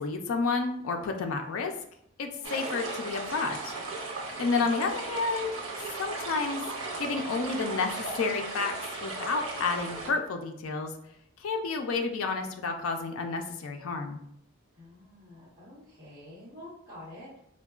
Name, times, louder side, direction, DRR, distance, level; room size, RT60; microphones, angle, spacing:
voice 1, 0.0-1.7 2.2-3.7 4.4-5.5 6.0-6.6 7.0-7.9 8.2-8.7 9.0-10.9 11.4-14.2, left 4 dB, 75° left, 4 dB, 0.4 m, -30 dB
sound 1, 2.4-10.1, right 3 dB, 70° right, 1.0 m, -37 dB
voice 2, 4.3-4.7 14.7-17.4, left 1 dB, 45° right, -7 dB, 1.0 m, -48 dB
4.5 x 2.2 x 2.3 m, 0.72 s
head